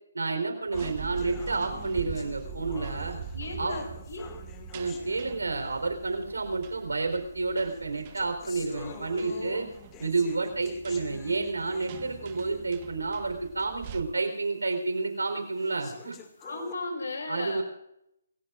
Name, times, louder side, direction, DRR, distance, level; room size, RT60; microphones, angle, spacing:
voice 1, 0.1-3.2 3.6-3.7 4.7-9.7 10.0-16.2 17.3-17.6, right 3 dB, 90° right, 6 dB, 4.1 m, -30 dB
sound 1, 0.7-5.9 6.7-6.8 7.6-12.9 13.3-13.4 13.9-14.0 14.7-14.8 15.6-16.7, left 8 dB, 20° left, 2.1 m, -49 dB
sound 2, 0.7-14.0, right 7 dB, 30° right, 1.2 m, -43 dB
voice 2, 3.3-4.2 8.8-9.6 16.4-17.6, left 2 dB, 80° left, 2 dB, 6.0 m, -36 dB
28.0 x 16.5 x 2.6 m, 0.80 s
hypercardioid pair, 155°, 0 cm